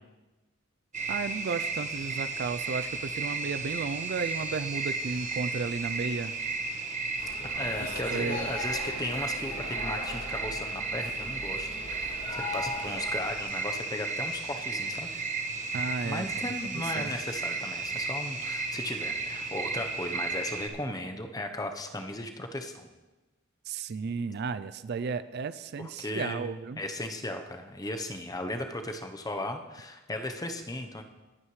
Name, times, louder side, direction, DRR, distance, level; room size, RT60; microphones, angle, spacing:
sound 1, 0.9-20.7, right 3 dB, 35° right, 1.2 m, -34 dB
voice 1, 1.1-6.4 7.8-8.5 15.7-16.2 17.0-17.1 23.7-26.8, right 5 dB, 50° right, 14 dB, 0.4 m, -34 dB
sound 2, 7.2-13.4, left 2 dB, 45° left, 4.4 m, -39 dB
voice 2, 7.6-15.1 16.0-22.9 25.8-26.5 26.8-31.0, left 1 dB, 20° left, 5 dB, 0.9 m, -36 dB
20.5 x 8.8 x 3.2 m, 1.1 s
head